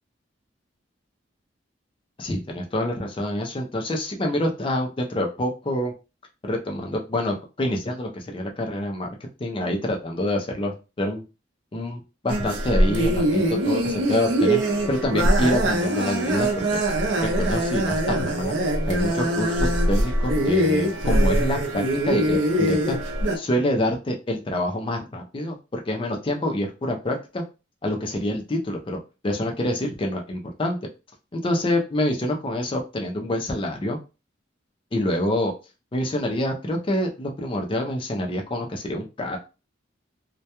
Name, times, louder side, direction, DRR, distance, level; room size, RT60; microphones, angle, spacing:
voice 1, 2.2-5.9 6.4-11.2 11.7-16.8 17.2-18.6 18.9-23.0 23.3-27.4 27.8-30.8 31.3-34.0 34.9-35.5 35.9-39.4, left 1 dB, 25° left, 2 dB, 0.4 m, -27 dB
sound 1, 12.3-23.4, right 1 dB, 70° right, 0.5 m, -22 dB
2.2 x 2.2 x 2.8 m, 0.30 s
head